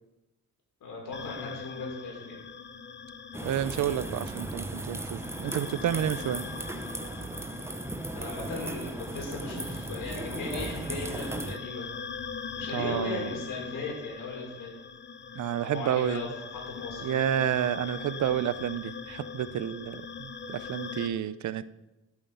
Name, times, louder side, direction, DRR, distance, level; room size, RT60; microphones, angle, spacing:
voice 1, 0.8-2.4 8.1-11.9 12.6-14.7 15.6-17.3 17.9-18.2, left 3 dB, 75° left, -1 dB, 5.6 m, -37 dB
sound 1, 1.1-21.1, left 6 dB, 35° left, 0.8 m, -42 dB
sound 2, 3.3-11.6, right 2 dB, 10° right, 0.7 m, -37 dB
voice 2, 3.4-6.4 12.7-13.3 15.4-16.2 17.0-21.6, right 10 dB, 60° right, 15 dB, 0.7 m, -30 dB
14.5 x 8.8 x 5.6 m, 0.98 s
cardioid pair, 125°, 32 cm